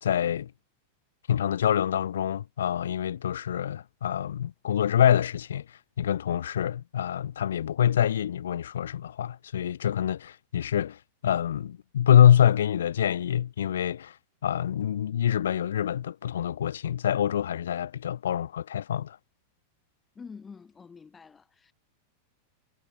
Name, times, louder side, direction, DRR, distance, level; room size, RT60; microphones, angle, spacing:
voice 1, 0.0-0.5 1.3-14.2 14.4-19.2, left 10 dB, 65° left, 1.6 m, -25 dB
voice 2, 20.1-21.7, left 5 dB, 15° left, 6.4 m, -47 dB
figure-of-eight pair, 90°, 0 cm